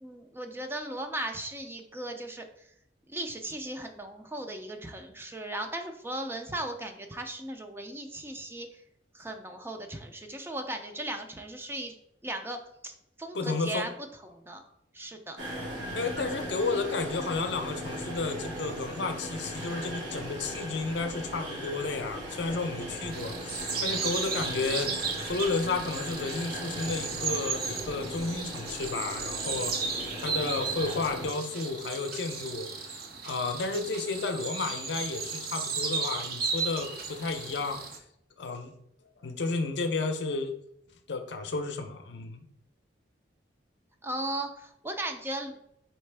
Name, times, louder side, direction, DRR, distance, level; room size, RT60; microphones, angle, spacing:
voice 1, 0.0-2.5 3.1-8.8 9.1-11.9 12.2-12.6 12.8-13.9 14.3-14.6 14.9-15.4 44.0-45.5, right 1 dB, 15° right, 5 dB, 0.4 m, -37 dB
voice 2, 13.3-13.8 15.9-38.0 38.4-38.7 39.2-40.5 41.1-42.4, left 3 dB, 70° left, 6 dB, 0.5 m, -32 dB
sound 1, 15.4-31.3, equal, 75° right, 1.5 m, -38 dB
sound 2, 23.1-38.0, right 5 dB, 55° right, 0.6 m, -35 dB
4.3 x 3.2 x 3.3 m, 0.74 s
head